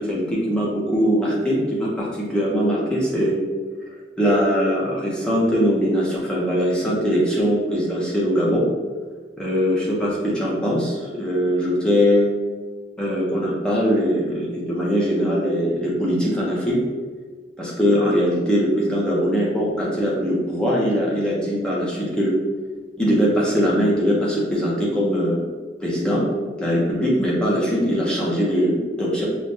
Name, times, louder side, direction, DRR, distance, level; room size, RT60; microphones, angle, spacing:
voice 1, 0.0-3.4 4.2-8.6 9.4-12.3 13.0-16.8 17.6-22.3 23.0-25.4 25.8-26.2 26.6-29.3, equal, 5° left, -6 dB, 0.9 m, -21 dB
4.9 x 2.4 x 2.7 m, 1.4 s
head